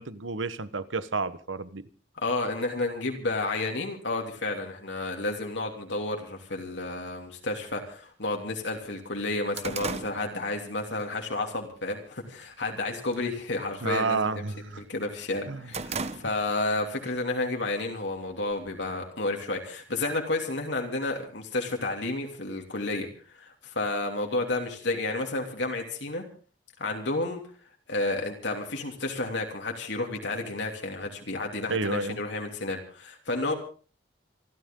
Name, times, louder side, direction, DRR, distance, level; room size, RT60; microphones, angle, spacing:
voice 1, 0.0-1.8 13.8-14.8 15.5-15.7 16.2-16.3 31.7-32.2, right 4 dB, 85° right, 1.2 m, -30 dB
voice 2, 2.2-14.4 14.8-23.1 23.3-26.2 26.8-27.4 27.9-33.5, left 2 dB, 65° left, 3.1 m, -31 dB
sound 1, 6.7-6.8 7.7-7.8 8.2-8.3 8.7-11.1 11.5-11.8 12.2-12.7 13.0-13.3 13.6-14.9 15.2-16.7 17.1-17.2 18.1-19.0, right 4 dB, 35° right, 1.0 m, -37 dB
27.5 x 13.0 x 3.8 m
head